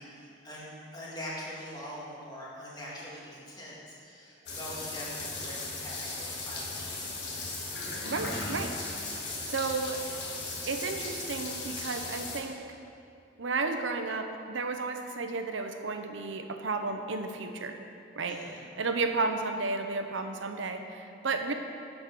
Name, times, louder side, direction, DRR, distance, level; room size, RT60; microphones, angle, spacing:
voice 1, 0.0-7.1 18.3-18.6, equal, 20° left, -6 dB, 1.9 m, -43 dB
sound 1, 4.5-12.4, left 2 dB, 65° left, 1.6 m, -37 dB
voice 2, 8.0-8.7 9.0-9.1 9.4-10.0 10.7-12.6 13.4-17.8 18.2-18.4 18.8-21.5, right 3 dB, 80° right, 6 dB, 0.7 m, -32 dB
10.0 x 5.5 x 6.0 m, 2.5 s
head